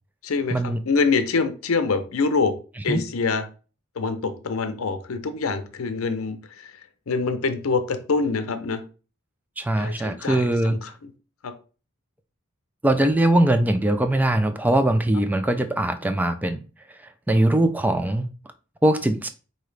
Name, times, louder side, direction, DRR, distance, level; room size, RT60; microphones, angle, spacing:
voice 1, 0.2-0.6 0.9-2.5 2.8-3.4 4.0-6.4 7.1-8.8 9.8-10.9 11.4-11.5, left 4 dB, 75° left, 0.6 m, -25 dB
voice 2, 9.6-10.8 12.8-16.6 17.3-18.3 18.8-19.3, right 1 dB, 10° right, 0.3 m, -21 dB
4.9 x 2.8 x 3.2 m
head